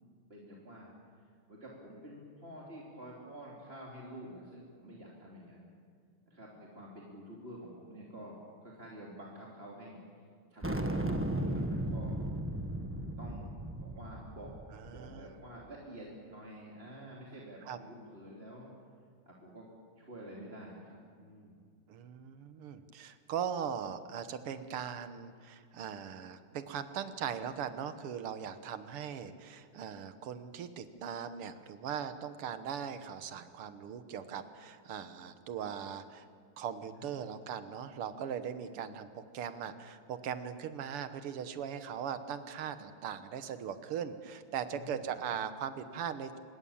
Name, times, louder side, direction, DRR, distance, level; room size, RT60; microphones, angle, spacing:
voice 1, 0.3-0.9 1.5-5.7 6.3-10.0 10.5-12.2 13.2-13.5 13.7-14.5 14.9-18.7 19.3-19.7 20.0-21.6 37.0-37.3 44.7-45.2, right 1 dB, 25° right, -4 dB, 3.1 m, -49 dB
sound 1, 10.6-15.3, right 1 dB, 10° right, 0.8 m, -35 dB
voice 2, 14.9-15.3 17.7-17.8 21.9-36.3 36.6-46.4, right 8 dB, 85° right, 10 dB, 2.1 m, -39 dB
25.5 x 21.5 x 7.2 m, 2.1 s
omnidirectional pair, 2.4 m